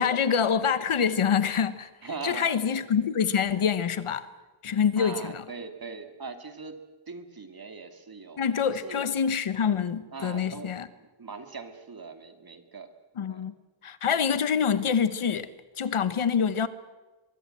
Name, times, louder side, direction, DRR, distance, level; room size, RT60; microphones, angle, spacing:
voice 1, 0.0-1.9 2.2-4.3 4.6-5.4 8.4-10.9 13.2-13.5 13.8-15.5 15.8-16.7, left 7 dB, 80° left, 1.4 m, -26 dB
voice 2, 2.0-2.9 5.0-9.1 9.7-9.8 10.1-10.7 11.0-12.9 13.3-13.5, right 4 dB, 45° right, 2.4 m, -41 dB
23.0 x 23.0 x 7.7 m
wide cardioid pair, 165°, 50 cm